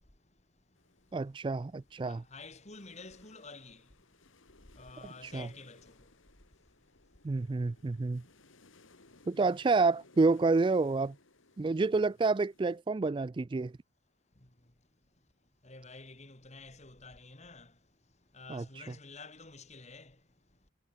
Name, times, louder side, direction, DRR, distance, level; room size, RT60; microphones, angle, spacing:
sound 1, 0.7-12.8, left 3 dB, 80° left, 2.7 m, -63 dB
voice 1, 1.1-2.2 5.2-5.5 7.2-8.2 9.3-11.1 11.6-13.7 18.5-18.6, right 3 dB, 25° right, 0.3 m, -28 dB
voice 2, 2.0-3.8 4.8-5.9 15.6-17.7 18.3-20.1, left 3 dB, 35° left, 3.3 m, -49 dB
head